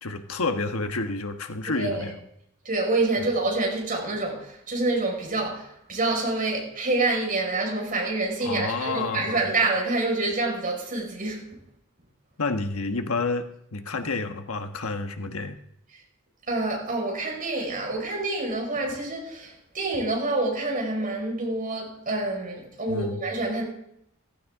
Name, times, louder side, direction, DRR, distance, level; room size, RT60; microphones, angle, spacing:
voice 1, 0.0-2.2 3.2-3.3 8.4-9.5 12.4-15.6 22.9-23.2, left 3 dB, 80° left, 1.2 m, -29 dB
voice 2, 1.7-2.1 2.6-11.5 16.5-23.6, right 2 dB, 40° right, 5.2 m, -27 dB
15.5 x 15.5 x 3.7 m
head